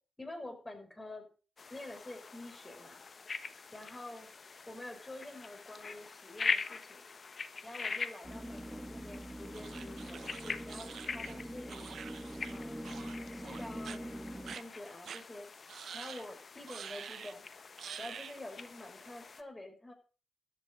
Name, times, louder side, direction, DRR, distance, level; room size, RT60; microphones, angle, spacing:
voice 1, 0.2-1.3 1.7-3.0 3.7-4.3 4.7-7.1 7.6-11.9 12.5-12.9 13.3-14.1 14.6-15.5 15.9-17.4 18.0-19.9, left 1 dB, 20° left, 5 dB, 5.4 m, -48 dB
sound 1, 1.6-19.4, left 4 dB, 45° left, 1.2 m, -43 dB
sound 2, 8.2-14.6, equal, 10° right, 2.1 m, -44 dB
sound 3, 9.5-12.6 12.8-13.2 13.4-14.0 14.4-14.6 15.0-15.2 15.7-16.3 16.7-17.3 17.8-18.4, right 7 dB, 65° right, 0.7 m, -46 dB
13.0 x 8.8 x 6.2 m, 0.38 s
supercardioid pair, 50°, 0 cm